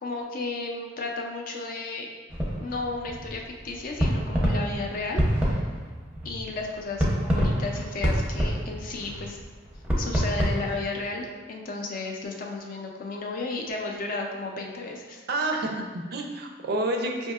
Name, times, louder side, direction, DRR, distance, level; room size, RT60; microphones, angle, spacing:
voice 1, 0.0-2.1 2.6-5.7 6.2-9.4 10.0-15.2 15.6-15.7, left 3 dB, 45° left, 1 dB, 0.4 m, -33 dB
sound 1, 2.3-10.8, equal, 5° right, 0.6 m, -27 dB
voice 2, 15.3-17.3, right 2 dB, 55° right, 2 dB, 0.4 m, -29 dB
5.3 x 2.7 x 2.3 m, 1.4 s
head